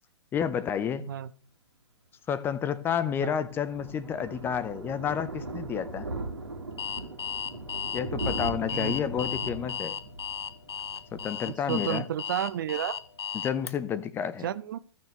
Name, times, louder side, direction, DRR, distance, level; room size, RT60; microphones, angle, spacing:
voice 1, 0.3-1.1 2.3-6.1 7.9-10.0 11.1-12.1 13.3-14.5, left 8 dB, 15° left, 0.5 m, -30 dB
Thunder, 2.7-12.1 12.4-12.7 13.0-13.1 13.2-13.3, right 2 dB, 75° right, 2.0 m, -39 dB
Alarm, 6.8-13.7, left 8 dB, 65° left, 0.7 m, -34 dB
voice 2, 11.5-13.0 14.4-14.8, right 10 dB, 50° right, 0.5 m, -31 dB
14.5 x 6.7 x 3.2 m
figure-of-eight pair, 110°, 15 cm